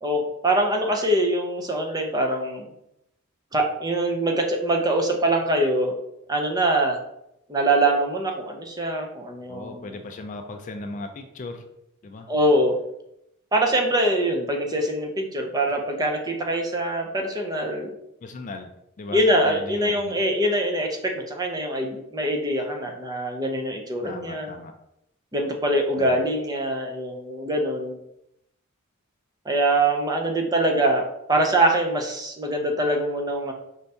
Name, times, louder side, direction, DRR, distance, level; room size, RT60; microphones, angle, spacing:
voice 1, 0.0-2.7 3.5-6.0 6.3-7.0 7.5-9.9 12.3-12.8 13.5-17.9 19.1-24.5 25.3-28.0 29.5-33.5, right 1 dB, 15° right, 1 dB, 0.6 m, -23 dB
voice 2, 9.5-11.7 12.0-12.3 18.2-18.7 19.0-20.2 24.0-24.7 26.0-26.2, left 2 dB, 35° left, 5 dB, 0.3 m, -37 dB
5.2 x 2.7 x 3.4 m, 0.81 s
head